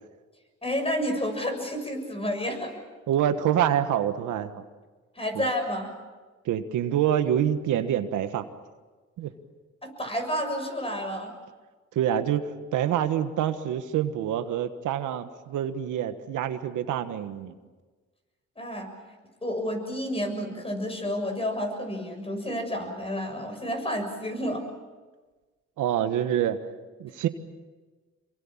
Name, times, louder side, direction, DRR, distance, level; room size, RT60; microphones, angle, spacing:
voice 1, 0.6-2.7 5.2-5.9 9.8-11.3 18.6-18.9 19.4-24.6, equal, 20° left, 5 dB, 6.8 m, -30 dB
voice 2, 3.1-4.6 5.4-5.5 6.4-8.4 9.2-9.3 11.9-17.6 25.8-26.6 27.0-27.3, right 10 dB, 85° right, 9 dB, 1.5 m, -26 dB
27.0 x 23.5 x 7.4 m, 1.3 s
cardioid pair, 90°, 30 cm